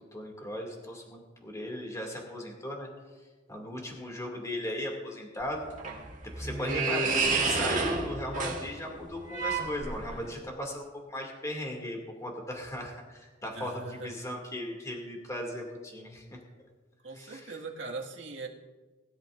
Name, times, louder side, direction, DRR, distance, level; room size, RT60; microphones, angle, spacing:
voice 1, 0.1-2.9 3.5-5.7 6.4-16.4 17.1-17.6, left 1 dB, 15° left, 0 dB, 2.4 m, -37 dB
sound 1, 5.4-10.4, right 3 dB, 40° right, 1.9 m, -30 dB
voice 2, 13.5-14.1 17.0-18.5, right 3 dB, 75° right, -2 dB, 1.9 m, -40 dB
21.0 x 13.0 x 2.6 m, 1.3 s
head